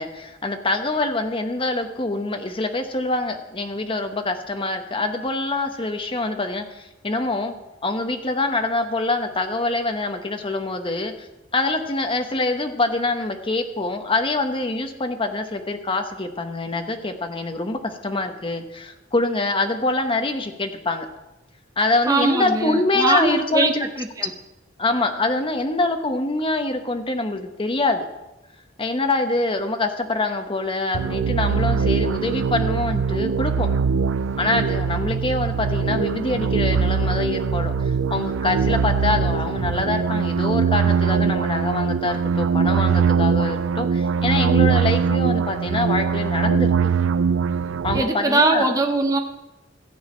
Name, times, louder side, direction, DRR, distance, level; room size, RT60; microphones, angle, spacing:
voice 1, 0.0-7.5 7.8-11.3 11.5-21.1 21.8-23.9 24.8-28.1 28.8-33.7 34.4-46.7 47.8-48.7, left 2 dB, 30° left, 6 dB, 1.0 m, -25 dB
voice 2, 22.1-23.7 24.0-24.3 47.9-49.2, right 2 dB, 20° right, 4 dB, 0.8 m, -21 dB
sound 1, 30.9-48.0, right 6 dB, 80° right, 0.4 m, -22 dB
14.0 x 4.8 x 8.8 m, 1.0 s
head